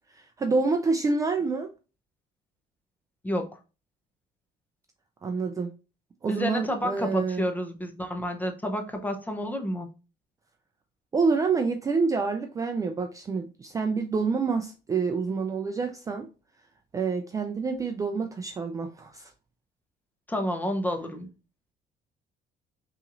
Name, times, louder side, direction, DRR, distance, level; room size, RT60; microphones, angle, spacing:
voice 1, 0.1-1.7 5.2-5.7 6.2-7.4 11.1-16.3 16.9-19.3, right 4 dB, 20° right, 0.3 m, -27 dB
voice 2, 6.3-9.9 20.3-21.3, equal, 10° left, 0.7 m, -30 dB
5.5 x 3.0 x 2.5 m
cardioid pair, 145°, 16 cm